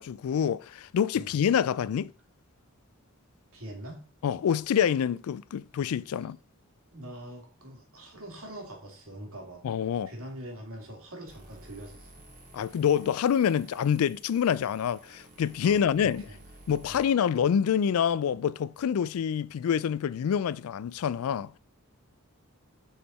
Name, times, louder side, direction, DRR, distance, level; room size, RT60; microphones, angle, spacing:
voice 1, 0.0-2.1 4.2-6.4 9.6-10.1 12.5-16.2 16.7-21.5, left 8 dB, 80° left, 0.3 m, -26 dB
voice 2, 3.5-4.0 6.9-9.6 10.1-12.3 15.6-16.4 16.9-17.1, right 1 dB, 75° right, 2.5 m, -43 dB
sound 1, 11.3-17.0, right 1 dB, 35° right, 2.0 m, -53 dB
6.5 x 5.6 x 4.3 m
head